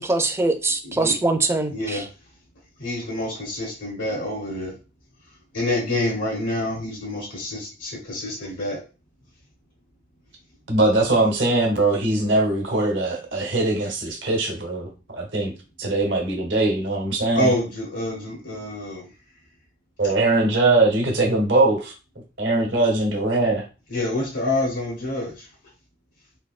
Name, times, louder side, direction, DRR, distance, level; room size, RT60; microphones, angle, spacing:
voice 1, 0.0-2.0, right 2 dB, 15° right, 6 dB, 0.4 m, -23 dB
voice 2, 0.8-1.2 1.7-2.1 2.8-4.8 5.5-8.8 17.3-19.1 23.9-25.5, left 1 dB, 90° left, -2 dB, 1.0 m, -27 dB
voice 3, 10.7-15.5 15.8-17.5 20.0-21.9 22.4-23.6, right 2 dB, 75° right, 2 dB, 1.0 m, -21 dB
3.4 x 2.6 x 2.4 m, 0.32 s
head